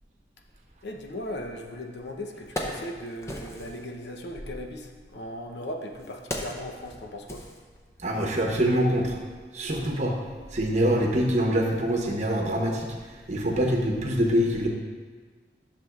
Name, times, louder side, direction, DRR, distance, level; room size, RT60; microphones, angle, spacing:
voice 1, 0.8-7.4, left 1 dB, 75° left, 2 dB, 0.8 m, -38 dB
Wood, 1.7-1.8 2.2-3.9 4.9-8.2 8.5-8.6, left 1 dB, 15° left, 0.6 m, -38 dB
voice 2, 8.0-9.2 9.5-10.1 10.5-12.9 13.3-14.7, equal, 40° right, 0 dB, 0.9 m, -24 dB
11.0 x 6.7 x 2.4 m, 1.5 s
head